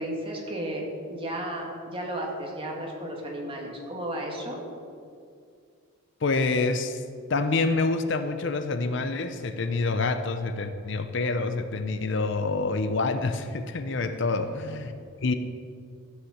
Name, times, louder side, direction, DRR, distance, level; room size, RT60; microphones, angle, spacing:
voice 1, 0.0-4.6 14.6-14.8, right 1 dB, 25° right, -1 dB, 2.0 m, -34 dB
voice 2, 6.2-7.0 7.3-14.9 15.2-15.3, left 3 dB, 60° left, 9 dB, 0.6 m, -27 dB
14.0 x 6.5 x 7.2 m, 2.3 s
head